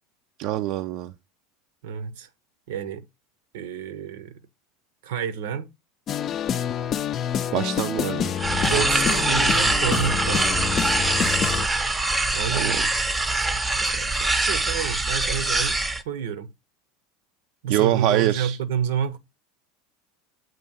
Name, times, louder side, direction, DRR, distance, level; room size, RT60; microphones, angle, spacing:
voice 1, 0.4-1.1 7.5-8.3 12.5-12.7 15.4-15.5 17.7-18.6, right 13 dB, 60° right, 0.4 m, -24 dB
voice 2, 1.8-2.3 2.7-3.0 3.5-4.4 5.0-5.7 8.7-10.6 12.3-12.9 13.8-15.8 16.0-16.5 17.6-19.2, right 8 dB, 80° right, 0.7 m, -29 dB
sound 1, 6.1-11.7, left 9 dB, 40° left, 0.4 m, -27 dB
sound 2, 8.4-16.0, right 2 dB, 15° right, 0.6 m, -23 dB
7.6 x 2.7 x 5.4 m
supercardioid pair, 110°, 0 cm